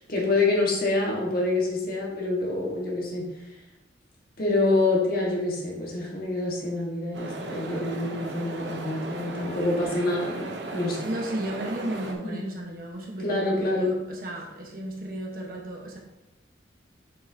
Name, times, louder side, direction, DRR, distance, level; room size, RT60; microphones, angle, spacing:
voice 1, 0.0-3.2 4.4-11.0 12.2-12.4 13.2-13.9, left 2 dB, 55° left, -3 dB, 1.7 m, -26 dB
sound 1, 7.1-12.1, right 2 dB, 75° right, 0.9 m, -36 dB
voice 2, 11.0-16.0, right 1 dB, 50° right, -1 dB, 1.3 m, -34 dB
6.6 x 5.7 x 2.8 m, 0.98 s
head